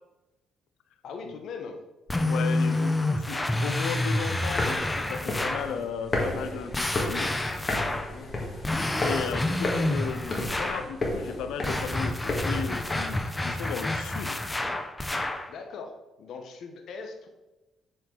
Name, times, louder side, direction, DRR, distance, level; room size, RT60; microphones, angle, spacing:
voice 1, 1.0-1.8 8.1-8.6 15.5-17.3, left 5 dB, 70° left, 4 dB, 0.9 m, -40 dB
sound 1, 2.1-5.7 6.7-8.1 8.6-10.9 11.6-15.5, left 1 dB, 15° left, 0.7 m, -29 dB
voice 2, 2.2-7.3 9.0-14.4, left 7 dB, 90° left, 9 dB, 0.6 m, -35 dB
sound 2, 4.4-13.2, left 2 dB, 40° left, 1.7 m, -33 dB
7.5 x 4.5 x 3.8 m, 1.1 s
cardioid pair, 90°, 0 cm